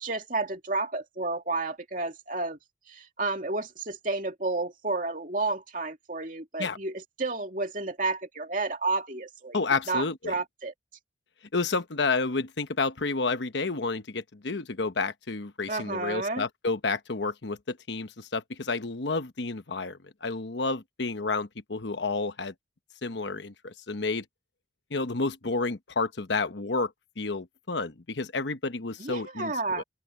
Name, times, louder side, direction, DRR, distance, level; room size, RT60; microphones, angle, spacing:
voice 1, 0.0-2.6 2.9-9.6 9.9-10.7 15.7-16.4 29.0-29.8, right 3 dB, 45° right, 2.7 m, -31 dB
voice 2, 9.5-10.3 11.5-22.5 23.0-24.2 24.9-29.8, left 3 dB, 70° left, 1.1 m, -30 dB
open air
head